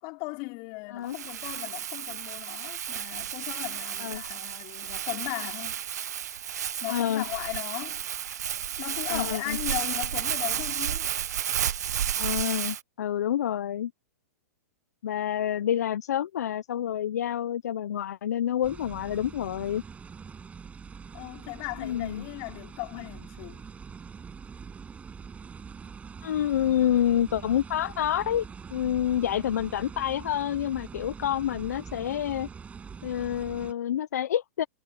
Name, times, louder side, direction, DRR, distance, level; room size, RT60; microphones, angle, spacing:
voice 1, 0.0-5.8 6.8-8.0 8.8-11.1 21.1-23.6, left 29 dB, 40° left, 3.7 m, -37 dB
Crumpling crinkling, 1.1-12.8, right 9 dB, 75° right, 1.1 m, -32 dB
voice 2, 6.9-7.3 9.1-9.6 12.2-13.9 15.0-19.8 21.8-22.3 26.2-28.4 28.7-32.5 33.0-34.7, left 10 dB, 70° left, 0.8 m, -28 dB
sound 1, 18.6-33.7, right 6 dB, 15° right, 7.1 m, -44 dB
hypercardioid pair, 125°, 9 cm